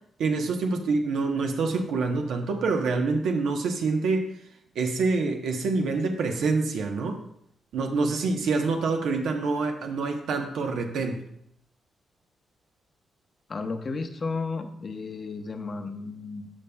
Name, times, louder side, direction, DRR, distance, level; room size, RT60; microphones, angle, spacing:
voice 1, 0.2-4.3 4.7-7.2 7.7-11.2, right 3 dB, 85° right, 3 dB, 0.9 m, -26 dB
voice 2, 13.5-16.5, left 4 dB, 40° left, 6 dB, 0.7 m, -33 dB
14.0 x 5.2 x 2.3 m, 0.72 s
cardioid pair, 100°, 0 cm